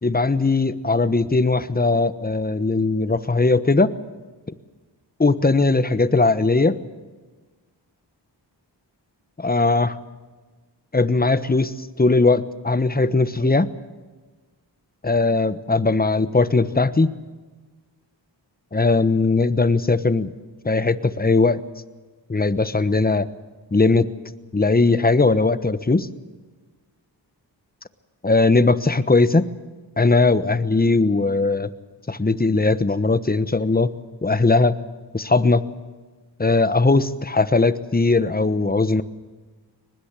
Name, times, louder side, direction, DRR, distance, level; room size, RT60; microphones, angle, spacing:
voice 1, 0.0-3.9 5.2-6.7 9.4-10.0 10.9-13.7 15.0-17.1 18.7-20.3 20.6-21.6 22.3-23.3 23.7-24.1 24.5-26.1 28.2-29.5 30.0-31.7 32.1-33.9 34.2-34.8 35.1-35.6 36.4-39.0, left 3 dB, 20° left, 13 dB, 1.1 m, -19 dB
23.5 x 20.5 x 7.5 m, 1.3 s
cardioid pair, 50°, 44 cm